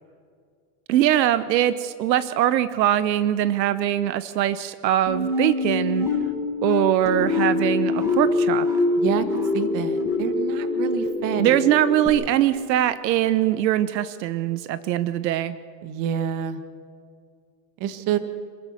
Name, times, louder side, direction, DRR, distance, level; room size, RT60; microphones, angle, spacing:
voice 1, 0.9-6.1 6.6-8.7 11.4-15.5, right 12 dB, 85° right, 13 dB, 1.0 m, -22 dB
sound 1, 5.1-12.1, left 3 dB, 5° right, 5.6 m, -24 dB
voice 2, 9.5-11.7 15.8-16.6 17.8-18.2, right 9 dB, 40° right, 9 dB, 1.7 m, -27 dB
27.5 x 14.5 x 6.7 m, 2.2 s
supercardioid pair, 140°, 49 cm